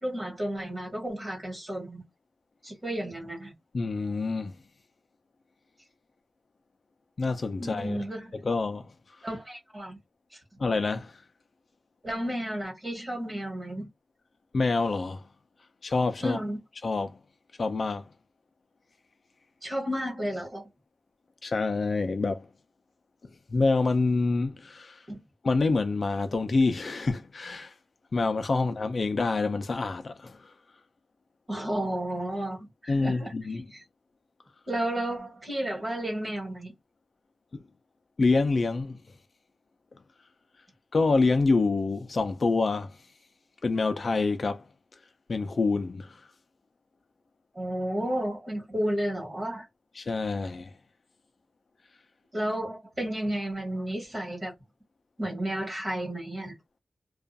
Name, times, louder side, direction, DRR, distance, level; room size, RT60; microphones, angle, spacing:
voice 1, 0.0-2.0 2.6-3.5 7.6-8.3 9.2-10.0 10.3-10.4 12.0-13.8 16.2-16.6 19.6-20.6 25.1-25.2 31.5-33.8 34.7-36.7 47.5-49.7 52.3-54.5 55.2-56.5, right 1 dB, 30° right, 1.2 m, -32 dB
voice 2, 3.7-4.5 7.2-8.0 8.4-8.9 10.6-11.1 14.5-15.2 15.8-16.4 16.8-17.2 17.6-18.1 21.4-22.5 23.5-25.0 25.4-27.7 28.1-30.4 32.9-33.6 37.5-37.6 38.2-39.0 40.9-42.9 43.6-44.6 45.3-46.1 50.0-50.7, left 3 dB, 50° left, 0.4 m, -26 dB
2.4 x 2.3 x 2.5 m
wide cardioid pair, 105°, 0 cm